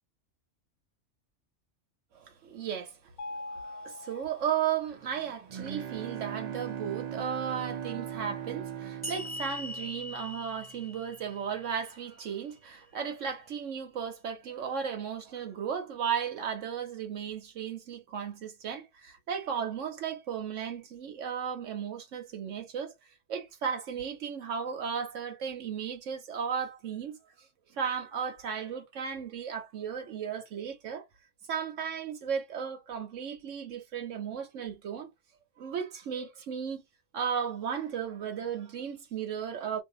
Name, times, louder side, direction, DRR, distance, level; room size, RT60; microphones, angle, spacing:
voice 1, 2.1-3.0 3.5-22.9 23.3-27.2 27.7-31.0 31.5-35.1 35.6-36.8 37.1-39.8, right 7 dB, 85° right, 1.2 m, -35 dB
Mallet percussion, 3.2-5.2, left 2 dB, 70° left, 0.9 m, -43 dB
Bowed string instrument, 5.2-10.6, right 9 dB, 60° right, 0.4 m, -39 dB
sound 1, 9.0-12.4, left 1 dB, 10° left, 1.2 m, -42 dB
2.6 x 2.6 x 3.7 m
omnidirectional pair, 1.2 m